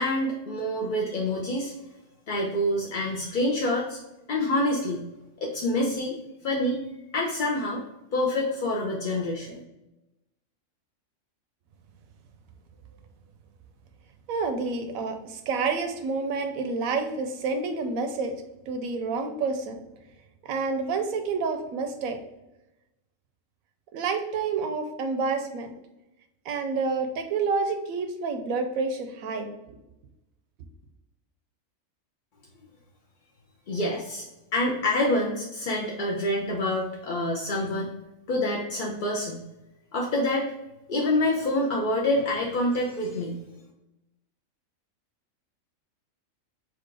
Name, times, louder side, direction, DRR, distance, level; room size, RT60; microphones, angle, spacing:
voice 1, 0.0-1.7 2.3-4.0 4.3-5.0 5.4-6.1 6.4-6.8 7.1-7.8 8.1-9.6 33.7-34.2 34.5-37.9 38.3-39.4 39.9-40.5 40.9-43.4, left 1 dB, 55° left, -3 dB, 0.6 m, -26 dB
voice 2, 14.3-18.3 18.7-19.8 20.5-22.2 23.9-25.7 26.5-29.5, right 4 dB, 80° right, 6 dB, 1.1 m, -28 dB
4.4 x 2.4 x 4.7 m, 0.95 s
omnidirectional pair, 1.4 m